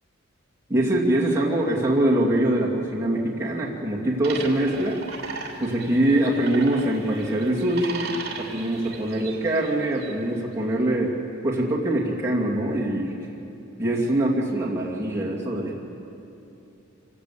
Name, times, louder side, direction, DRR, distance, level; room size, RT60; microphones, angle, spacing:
voice 1, 0.7-5.0 5.6-11.1 11.4-13.1 13.8-15.9, right 1 dB, 10° right, -5 dB, 2.4 m, -23 dB
sound 1, 4.2-10.3, right 4 dB, 50° right, 2.9 m, -37 dB
26.0 x 16.0 x 8.5 m, 2.9 s
head